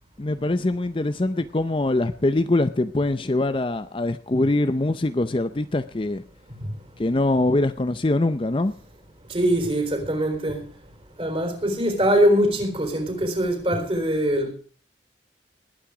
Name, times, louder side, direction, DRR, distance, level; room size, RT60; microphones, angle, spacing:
voice 1, 0.2-6.2 7.0-8.7, left 2 dB, 30° left, 0.5 m, -23 dB
voice 2, 9.3-10.6 11.2-14.5, equal, 30° right, 4.0 m, -22 dB
20.0 x 9.0 x 4.9 m
head